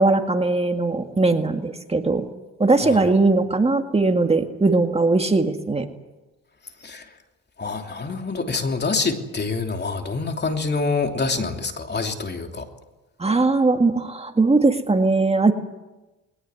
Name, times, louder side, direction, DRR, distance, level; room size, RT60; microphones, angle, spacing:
voice 1, 0.0-2.2 2.6-5.9 13.2-15.5, right 3 dB, 20° right, 6 dB, 1.9 m, -19 dB
voice 2, 6.8-7.1 7.6-12.7, left 4 dB, 35° left, 4 dB, 3.0 m, -26 dB
21.5 x 19.0 x 9.6 m, 1.1 s
cardioid pair, 90°, 30 cm